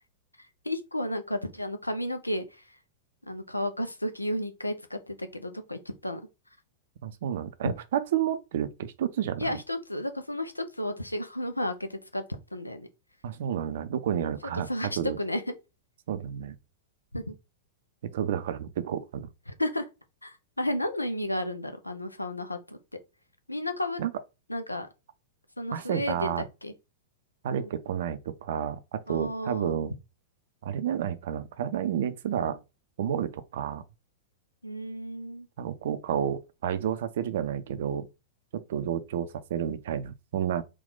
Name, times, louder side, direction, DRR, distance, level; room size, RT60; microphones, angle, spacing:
voice 1, 0.4-2.8 3.3-6.2 9.4-12.2 12.5-12.9 14.2-15.5 17.1-17.3 19.5-19.9 20.2-22.8 23.5-24.0 24.5-24.9 25.6-26.7 27.6-27.7 29.1-29.8 34.6-35.5, left 1 dB, 85° left, 0.6 m, -33 dB
voice 2, 7.0-9.5 13.2-14.7 15.0-15.2 16.1-16.6 18.0-19.3 24.0-24.1 25.7-26.5 27.4-29.9 30.6-32.6 33.0-33.8 35.6-38.1 38.5-40.6, right 9 dB, 55° right, 0.5 m, -30 dB
3.8 x 2.4 x 3.8 m
figure-of-eight pair, 95°, 0 cm